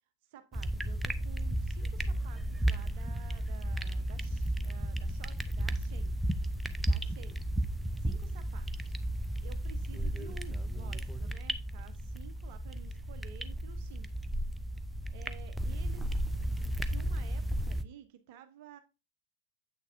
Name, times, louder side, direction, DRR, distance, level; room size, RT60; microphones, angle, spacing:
voice 1, 0.3-6.2 6.8-7.4 8.0-8.9 9.4-14.1 15.1-16.1 16.8-18.8, right 9 dB, 50° right, 0.8 m, -53 dB
sound 1, 0.5-17.8, right 1 dB, 5° right, 0.5 m, -34 dB
7.7 x 6.3 x 2.6 m
figure-of-eight pair, 90°, 0 cm